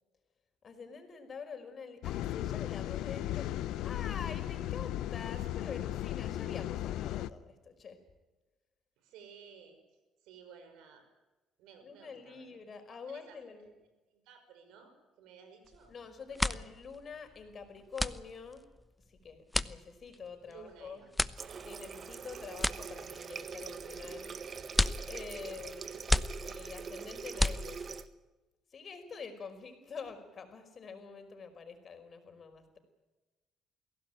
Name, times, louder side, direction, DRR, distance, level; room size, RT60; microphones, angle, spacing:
voice 1, 0.6-3.5 3.8-8.0 11.8-13.7 15.9-18.7 19.1-21.0 21.6-24.4 25.1-25.9 26.4-27.8 28.7-32.8, left 5 dB, 50° left, 7 dB, 5.1 m, -46 dB
sound 1, 2.0-7.3, left 13 dB, 75° left, 0.8 m, -36 dB
voice 2, 9.0-9.8 10.2-11.0 11.6-12.6 12.9-13.7 14.1-15.9 16.3-16.6 20.5-21.1, right 6 dB, 75° right, 8 dB, 5.7 m, -55 dB
sound 2, 15.7-15.9 16.2-28.1, left 1 dB, 10° left, 0.9 m, -35 dB
Water tap faucet, 21.4-28.1, right 6 dB, 50° right, 1.5 m, -43 dB
22.5 x 17.0 x 9.3 m, 1.1 s
supercardioid pair, 60°, 0 cm